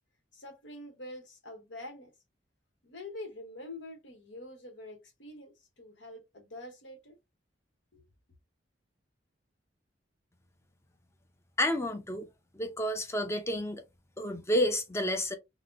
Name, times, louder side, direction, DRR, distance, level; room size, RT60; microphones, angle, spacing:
voice 1, 0.3-2.1 2.8-7.2 7.9-8.0, left 1 dB, 75° left, 1.1 m, -46 dB
voice 2, 11.6-12.3 12.5-13.8 14.2-15.4, equal, 15° left, 0.6 m, -30 dB
4.1 x 2.1 x 2.6 m
head